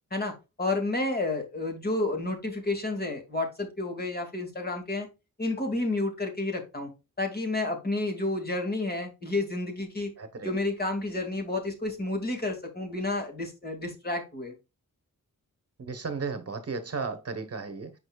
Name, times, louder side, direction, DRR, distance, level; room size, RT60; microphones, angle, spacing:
voice 1, 0.1-5.1 5.4-6.9 7.2-10.1 10.4-14.5, left 2 dB, 30° left, 2.1 m, -30 dB
voice 2, 10.2-10.5 15.8-18.0, right 4 dB, 50° right, 1.0 m, -34 dB
8.8 x 5.3 x 2.3 m
wide cardioid pair, 165°, 32 cm